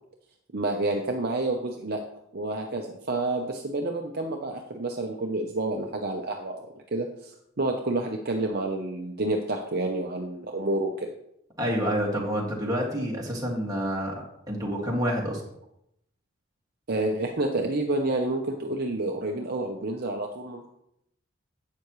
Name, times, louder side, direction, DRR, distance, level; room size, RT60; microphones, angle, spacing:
voice 1, 0.5-2.0 2.3-6.6 6.9-11.1 16.9-20.7, right 2 dB, 45° right, 1 dB, 0.8 m, -29 dB
voice 2, 11.6-15.4, equal, 15° right, -3 dB, 2.1 m, -28 dB
11.5 x 8.4 x 3.2 m, 0.78 s
head